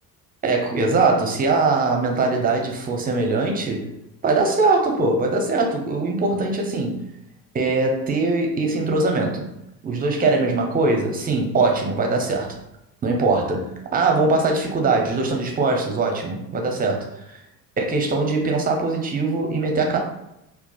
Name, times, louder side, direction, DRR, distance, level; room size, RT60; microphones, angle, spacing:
voice 1, 0.4-3.9 4.2-7.0 7.5-9.5 9.8-12.6 13.0-17.4 17.8-20.0, right 3 dB, 20° right, 2 dB, 0.5 m, -21 dB
2.8 x 2.1 x 2.3 m, 0.84 s
hypercardioid pair, 60°, 49 cm